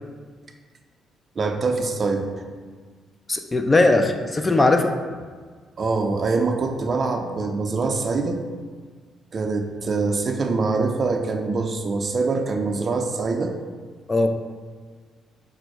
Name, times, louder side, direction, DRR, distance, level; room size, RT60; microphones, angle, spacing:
voice 1, 1.4-2.3 5.8-8.4 9.3-13.6, right 3 dB, 40° right, 5 dB, 0.4 m, -24 dB
voice 2, 3.3-5.0 14.1-14.3, left 2 dB, 25° left, 5 dB, 0.3 m, -19 dB
5.0 x 2.0 x 4.6 m, 1.5 s
cardioid pair, 90°, 0 cm